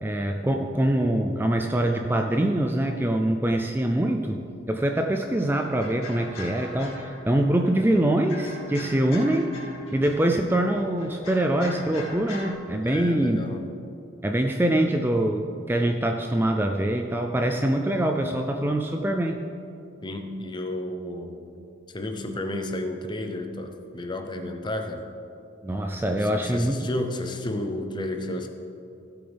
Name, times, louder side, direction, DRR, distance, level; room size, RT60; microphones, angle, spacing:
voice 1, 0.0-4.4 4.7-9.5 9.9-13.4 14.2-19.4 25.6-26.9, right 1 dB, 10° right, 3 dB, 0.4 m, -24 dB
sound 1, 5.1-12.5, left 2 dB, 90° left, 2.3 m, -42 dB
voice 2, 12.8-13.7 20.0-21.6 21.9-25.0 26.2-28.5, left 1 dB, 20° left, 5 dB, 0.7 m, -32 dB
17.0 x 8.0 x 3.5 m, 2.8 s
head